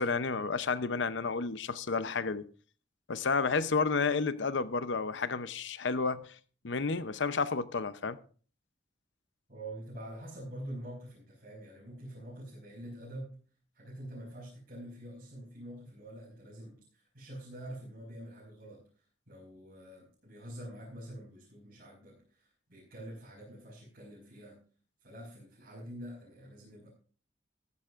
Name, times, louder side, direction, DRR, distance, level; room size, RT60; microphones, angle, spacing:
voice 1, 0.0-2.4 3.1-6.3 6.6-8.2, left 4 dB, 80° left, 0.7 m, -31 dB
voice 2, 9.5-13.4 13.7-18.8 19.3-24.6 25.0-26.9, right 1 dB, 55° right, 5.4 m, -46 dB
14.5 x 13.5 x 2.5 m
head